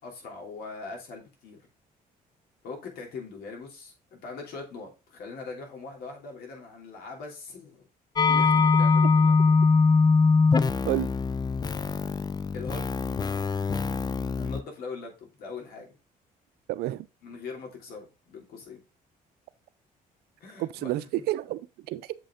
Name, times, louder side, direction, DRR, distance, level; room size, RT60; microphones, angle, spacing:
voice 1, 0.0-1.6 2.6-7.9 8.3-9.4 12.5-12.9 14.3-16.0 17.2-18.8 20.4-21.0, left 4 dB, 80° left, 2.8 m, -41 dB
sound 1, 8.2-14.6, left 4 dB, 25° left, 0.4 m, -22 dB
voice 2, 8.3-8.6 10.8-11.1 16.7-17.1 20.6-22.1, right 15 dB, 90° right, 0.6 m, -31 dB
7.4 x 5.2 x 3.6 m
cardioid pair, 105°, 16 cm